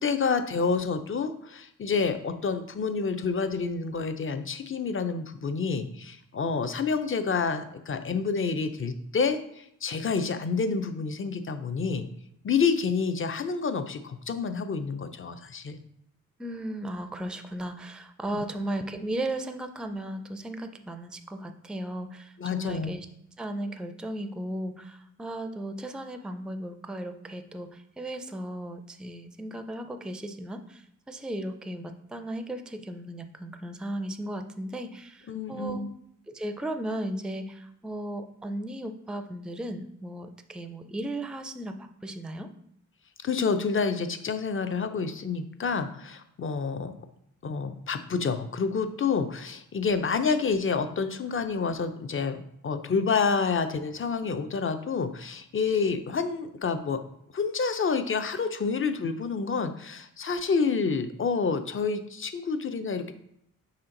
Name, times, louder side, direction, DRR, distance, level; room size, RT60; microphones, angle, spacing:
voice 1, 0.0-12.1 12.4-15.8 18.3-18.4 22.4-22.9 35.3-35.9 43.2-47.1 47.4-57.0 57.3-63.1, left 5 dB, 40° left, 9 dB, 0.6 m, -28 dB
voice 2, 16.4-23.1 23.4-35.9 36.3-42.5, right 1 dB, 5° right, 8 dB, 0.4 m, -36 dB
5.7 x 4.4 x 3.8 m, 0.74 s
wide cardioid pair, 95°, 31 cm